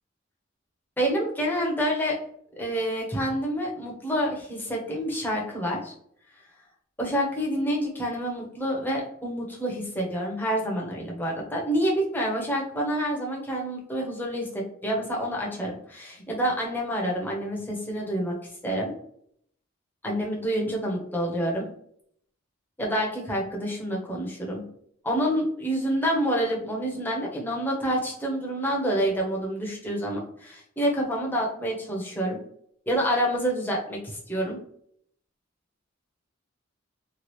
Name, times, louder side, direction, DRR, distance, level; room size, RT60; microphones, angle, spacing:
voice 1, 1.0-2.2 2.6-5.9 7.0-18.3 18.6-18.9 20.0-21.7 22.8-24.6 25.0-32.4 32.9-34.6, equal, 10° left, -2 dB, 0.7 m, -28 dB
3.1 x 2.3 x 3.0 m, 0.66 s
head